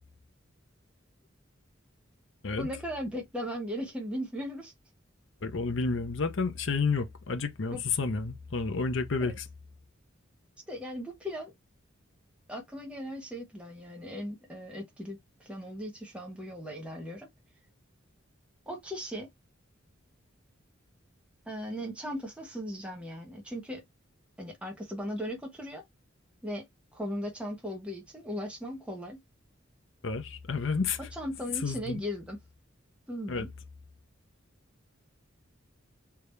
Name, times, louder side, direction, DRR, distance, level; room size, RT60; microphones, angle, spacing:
voice 1, 2.6-4.7 7.7-7.8 9.2-9.4 10.7-11.5 12.5-17.3 18.7-19.3 21.5-23.8 24.4-25.8 26.4-26.7 26.9-29.2 31.1-32.4 33.1-33.5, equal, 5° right, 1.0 m, -37 dB
voice 2, 5.4-9.5 30.0-31.0 31.6-32.0 33.3-33.5, left 4 dB, 65° left, 0.7 m, -30 dB
3.5 x 2.8 x 3.2 m
head